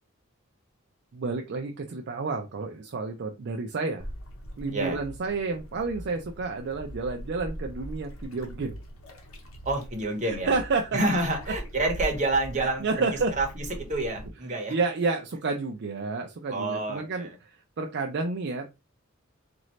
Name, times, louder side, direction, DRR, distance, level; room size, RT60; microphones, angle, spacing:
voice 1, 1.1-4.1 4.6-8.8 10.2-11.0 12.6-13.3 14.7-18.7, right 4 dB, 55° right, 4 dB, 0.4 m, -30 dB
sound 1, 4.0-14.3, equal, 75° left, 1.0 m, -41 dB
voice 2, 9.6-10.6 10.9-13.0 13.4-14.7 16.5-17.3, right 2 dB, 35° right, 2 dB, 1.1 m, -28 dB
4.1 x 2.6 x 3.1 m, 0.27 s
head